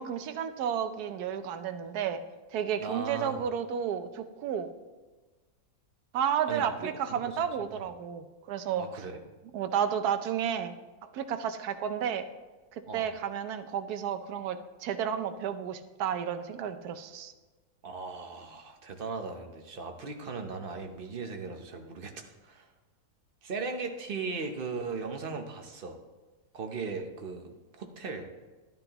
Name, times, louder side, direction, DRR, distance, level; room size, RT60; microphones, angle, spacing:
voice 1, 0.0-2.2 2.5-4.7 6.1-8.8 9.5-10.8 11.0-12.3 12.7-17.3, right 8 dB, 90° right, 10 dB, 1.2 m, -32 dB
voice 2, 2.8-3.4 6.5-7.3 7.6-7.8 8.8-9.2 12.9-13.1 17.8-22.7 23.4-26.0 26.5-28.3, right 4 dB, 45° right, 5 dB, 0.9 m, -38 dB
12.0 x 10.5 x 3.0 m, 1.3 s
omnidirectional pair, 1.6 m